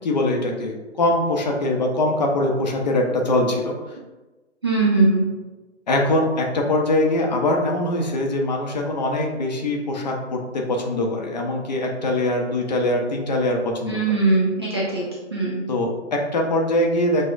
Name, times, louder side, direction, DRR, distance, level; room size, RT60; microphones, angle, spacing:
voice 1, 0.0-3.9 5.9-14.0 15.7-17.2, left 1 dB, 40° left, 1 dB, 0.6 m, -22 dB
voice 2, 4.6-5.3 13.9-15.0 15.3-15.6, right 3 dB, 25° right, -5 dB, 0.4 m, -20 dB
6.2 x 2.1 x 2.4 m, 1.1 s
figure-of-eight pair, 140°, 36 cm